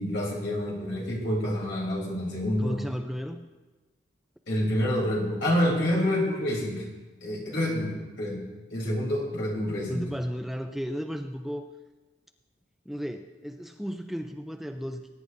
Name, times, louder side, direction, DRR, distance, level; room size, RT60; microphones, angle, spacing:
voice 1, 0.0-2.8 4.5-6.8 7.2-10.1, left 1 dB, 70° left, -3 dB, 3.4 m, -28 dB
voice 2, 2.6-3.4 9.9-11.6 12.9-15.1, equal, ahead, 6 dB, 0.3 m, -34 dB
20.5 x 9.9 x 2.6 m, 1.2 s
head